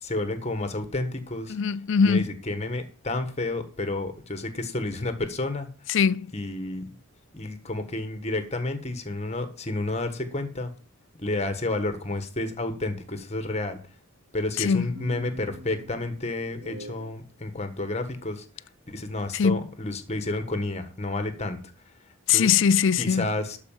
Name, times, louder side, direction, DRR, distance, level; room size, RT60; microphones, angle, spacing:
voice 1, 0.0-1.6 2.0-5.7 6.3-6.9 7.3-10.7 11.2-13.8 14.3-18.4 18.9-21.6 22.3-22.5 23.0-23.6, left 2 dB, 30° left, 1.4 m, -30 dB
voice 2, 1.5-2.2 5.9-6.3 14.6-14.9 19.3-19.6 22.3-23.3, left 6 dB, 55° left, 0.4 m, -21 dB
sound 1, 14.9-17.2, equal, 75° right, 0.8 m, -44 dB
12.0 x 4.9 x 7.3 m
head